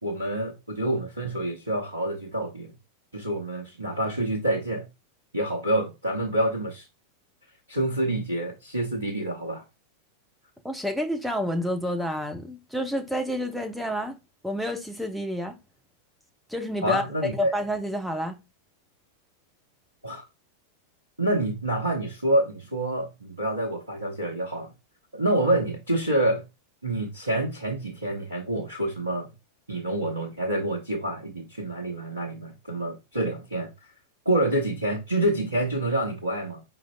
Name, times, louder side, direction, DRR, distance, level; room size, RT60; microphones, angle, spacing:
voice 1, 0.0-2.7 3.1-4.9 5.3-6.9 7.7-9.6 16.8-17.5 20.0-20.3 21.2-24.7 25.1-26.5 26.8-29.3 29.7-33.9 34.2-36.6, right 1 dB, 80° right, 0.8 m, -27 dB
voice 2, 10.6-15.6 16.5-17.0 17.4-18.4, equal, ahead, 0.8 m, -29 dB
5.0 x 3.7 x 2.3 m
figure-of-eight pair, 90°, 0 cm